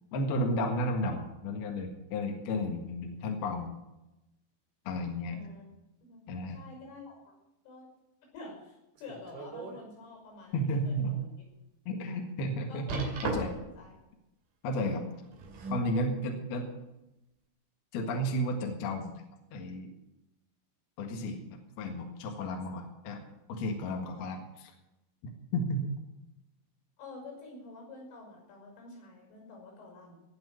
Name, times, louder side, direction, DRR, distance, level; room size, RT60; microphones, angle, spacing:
voice 1, 0.1-3.7 4.9-5.4 6.3-6.6 10.5-11.1 11.9-13.5 14.6-15.0 15.7-16.7 17.9-19.1 19.5-19.9 21.0-23.2 23.5-24.7 25.5-25.9, equal, 60° left, 2 dB, 3.2 m, -33 dB
voice 2, 5.3-5.6 6.0-6.2 6.5-7.3 7.6-7.9 8.3-11.3 12.7-14.0 27.0-30.2, left 3 dB, 85° left, 0 dB, 8.3 m, -48 dB
sound 1, 9.0-9.8 10.3-10.4 11.0-11.1 12.9-13.8 15.1-15.9 16.8-16.9, right 3 dB, 75° right, 4.9 m, -37 dB
19.0 x 6.3 x 9.3 m, 0.93 s
omnidirectional pair, 5.6 m